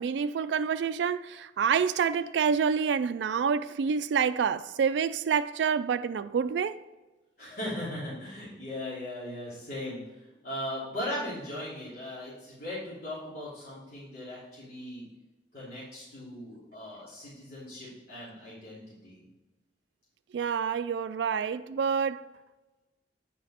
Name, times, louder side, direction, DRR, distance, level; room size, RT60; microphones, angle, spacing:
voice 1, 0.0-6.7 20.3-22.3, right 6 dB, 75° right, 0.3 m, -27 dB
voice 2, 7.4-15.0 15.5-19.2, left 1 dB, 60° left, 3.0 m, -38 dB
9.2 x 5.1 x 4.3 m
head